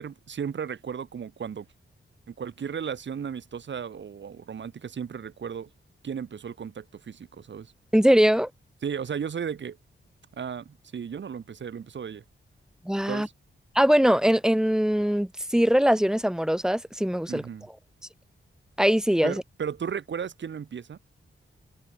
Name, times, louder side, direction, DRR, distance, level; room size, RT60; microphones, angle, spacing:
voice 1, 0.0-1.7 2.3-5.7 6.0-7.7 8.8-9.8 10.3-12.2 13.1-13.3 17.3-17.7 19.2-21.0, right 7 dB, 60° right, 1.2 m, -35 dB
voice 2, 7.9-8.5 12.8-13.3 13.7-17.4 18.8-19.4, equal, 5° right, 1.4 m, -21 dB
wide cardioid pair, 105°, 21 cm